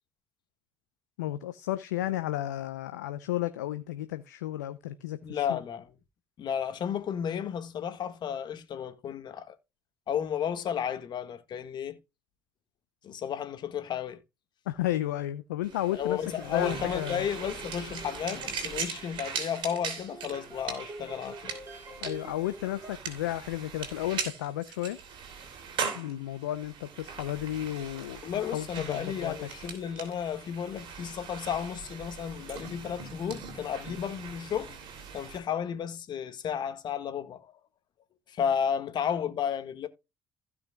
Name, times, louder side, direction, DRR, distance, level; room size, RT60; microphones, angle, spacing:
voice 1, 1.2-5.6 14.7-17.2 22.0-25.0 25.9-28.2 28.5-29.5, left 14 dB, 85° left, 0.6 m, -33 dB
voice 2, 5.2-5.9 6.4-9.5 10.1-12.0 13.0-14.2 15.9-21.5 28.2-34.8 35.1-37.5 38.3-39.9, left 8 dB, 55° left, 1.7 m, -33 dB
sound 1, 15.6-35.4, right 6 dB, 65° right, 3.0 m, -40 dB
sound 2, 16.2-22.9, right 2 dB, 30° right, 5.7 m, -47 dB
16.0 x 6.1 x 2.3 m
hypercardioid pair, 55°, 9 cm